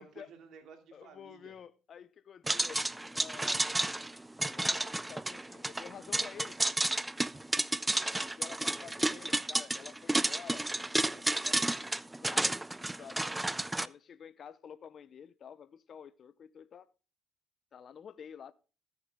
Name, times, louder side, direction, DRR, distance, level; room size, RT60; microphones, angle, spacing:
voice 1, 0.0-1.6 7.9-8.9, right 5 dB, 65° right, 2.6 m, -55 dB
voice 2, 0.9-2.8 3.1-3.8 4.4-6.7 8.4-10.7 11.1-11.9 12.2-13.4 13.8-16.9 17.7-18.5, left 8 dB, 50° left, 0.6 m, -50 dB
sound 1, 2.5-13.9, right 1 dB, 10° right, 0.4 m, -32 dB
15.0 x 7.0 x 3.6 m
cardioid pair, 90°, 0 cm